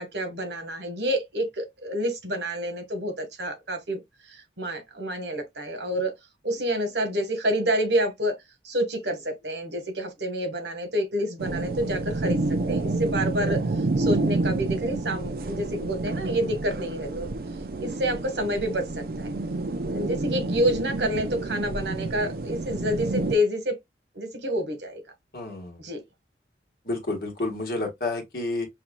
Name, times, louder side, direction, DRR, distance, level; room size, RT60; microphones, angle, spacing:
voice 1, 0.0-4.0 4.3-6.1 6.4-8.4 8.6-12.4 12.7-13.6 14.0-17.3 17.8-19.3 19.9-23.7 24.1-25.0 25.8-26.0, equal, 75° right, 1.3 m, -28 dB
sound 1, 11.4-23.4, right 2 dB, 55° right, 0.5 m, -29 dB
voice 2, 25.3-25.8 26.8-28.7, left 2 dB, 55° left, 1.5 m, -30 dB
5.8 x 2.9 x 2.2 m
head